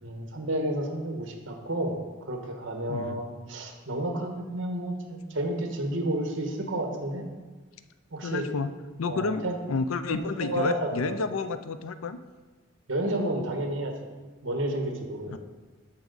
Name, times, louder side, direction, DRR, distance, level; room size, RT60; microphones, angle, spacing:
voice 1, 0.0-2.0 2.3-7.2 8.1-8.5 9.1-9.6 10.1-11.2 12.9-13.9 14.4-15.4, right 1 dB, 65° right, 3 dB, 1.3 m, -31 dB
voice 2, 2.9-3.2 8.2-8.7 9.0-12.2 15.3-15.4, left 4 dB, 90° left, 11 dB, 0.5 m, -30 dB
13.0 x 4.8 x 4.0 m, 1.3 s
head